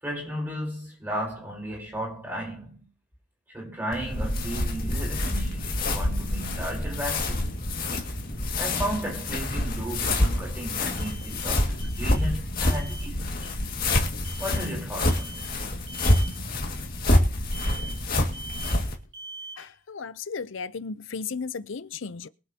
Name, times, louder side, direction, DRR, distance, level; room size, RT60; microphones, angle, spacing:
voice 1, 0.0-2.8 3.5-7.4 8.6-13.5 14.4-15.6, right 1 dB, 10° right, 5.3 m, -34 dB
sound 1, 3.9-18.9, left 1 dB, 45° left, 2.1 m, -27 dB
sound 2, 11.0-12.3 12.6-13.1 14.2-14.7 15.0-15.5 15.9-16.4 17.5-18.1 18.3-18.9 19.1-19.7, right 3 dB, 60° right, 2.2 m, -43 dB
voice 2, 19.6-22.3, left 5 dB, 70° left, 0.6 m, -35 dB
23.0 x 7.9 x 2.9 m
head